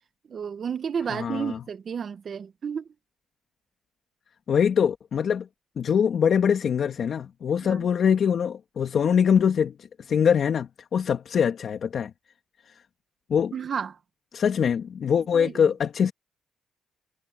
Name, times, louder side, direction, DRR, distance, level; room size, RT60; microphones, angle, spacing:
voice 1, 0.3-2.8 7.6-7.8 13.5-14.0 15.3-15.5, right 7 dB, 50° right, 1.7 m, -31 dB
voice 2, 1.1-1.6 4.5-5.5 5.8-12.1 12.7-12.8 13.3-13.5 14.3-16.1, left 7 dB, 55° left, 2.5 m, -23 dB
cardioid pair, 90°, 0 cm